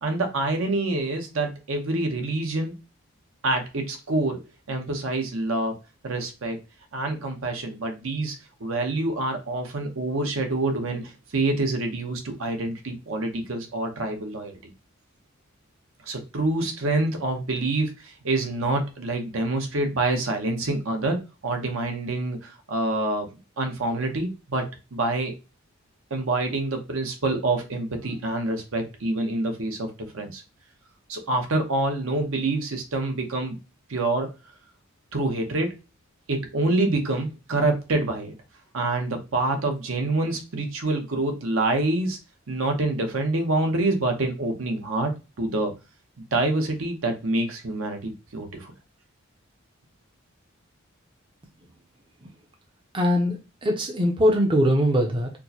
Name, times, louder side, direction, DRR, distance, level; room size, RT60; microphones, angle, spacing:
voice 1, 0.0-2.7 3.4-4.4 4.7-5.8 6.0-6.6 6.9-14.6 16.1-23.3 23.6-25.4 26.1-30.4 31.1-33.6 33.9-34.3 35.1-35.8 36.3-38.3 38.7-42.2 42.5-45.1 45.4-45.7 46.3-48.7, right 2 dB, 75° right, 4 dB, 0.8 m, -26 dB
voice 2, 52.9-55.3, equal, 25° right, 2 dB, 0.5 m, -21 dB
4.5 x 2.1 x 2.8 m, 0.28 s
head